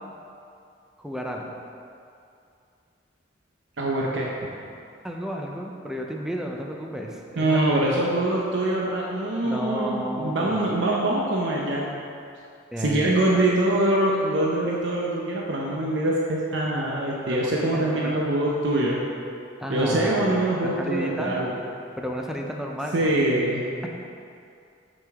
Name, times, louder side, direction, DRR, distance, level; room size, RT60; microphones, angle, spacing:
voice 1, 1.0-1.5 5.0-7.6 9.4-10.7 12.7-13.1 17.3-18.2 19.6-21.4 22.0-23.1, equal, 5° right, 0 dB, 0.6 m, -32 dB
voice 2, 3.8-4.3 7.4-11.9 12.8-19.0 19.7-21.5 22.9-23.6, right 1 dB, 85° right, -3 dB, 0.8 m, -24 dB
9.5 x 5.2 x 3.6 m, 2.5 s
head